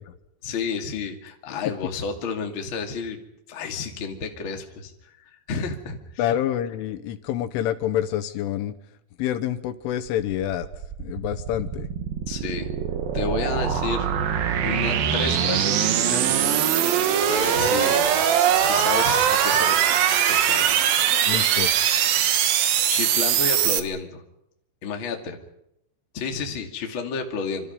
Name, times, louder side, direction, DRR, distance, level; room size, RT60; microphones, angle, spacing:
voice 1, 0.4-3.2 3.5-4.9 5.2-6.3 12.3-12.7 13.1-14.1 14.6-16.5 16.9-17.0 17.3-18.2 18.6-20.0 20.2-21.0 22.9-24.2 24.8-25.4 26.1-27.7, left 5 dB, 35° left, 3 dB, 2.2 m, -31 dB
voice 2, 6.2-8.7 9.2-10.7 11.0-11.9 21.3-21.7, left 11 dB, 75° left, 11 dB, 3.4 m, -27 dB
sound 1, 10.1-23.8, right 9 dB, 65° right, 2.5 m, -22 dB
27.0 x 26.0 x 5.4 m, 0.80 s
omnidirectional pair, 5.9 m